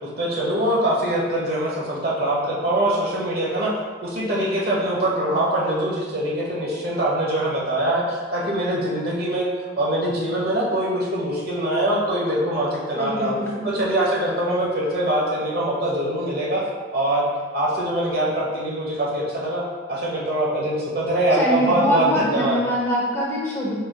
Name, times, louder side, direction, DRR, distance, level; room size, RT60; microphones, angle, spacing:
voice 1, 0.0-3.7 4.0-9.5 9.8-13.4 13.6-16.6 16.9-17.3 17.5-19.6 19.9-22.6, right 1 dB, 55° right, -4 dB, 1.0 m, -23 dB
voice 2, 13.0-13.7 21.3-23.7, equal, 15° left, -5 dB, 0.7 m, -23 dB
5.0 x 4.4 x 2.2 m, 1.5 s
head